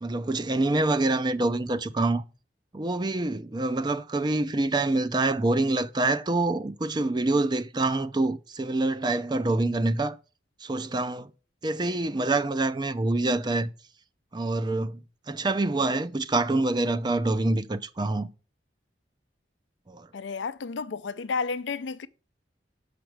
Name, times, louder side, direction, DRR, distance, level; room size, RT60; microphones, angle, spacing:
voice 1, 0.0-2.2 2.7-10.2 10.6-11.3 11.6-13.7 14.3-15.0 15.3-18.3 19.9-20.1, right 2 dB, 25° right, 0.5 m, -26 dB
voice 2, 20.1-22.1, left 5 dB, 90° left, 0.5 m, -31 dB
7.1 x 5.2 x 4.6 m
head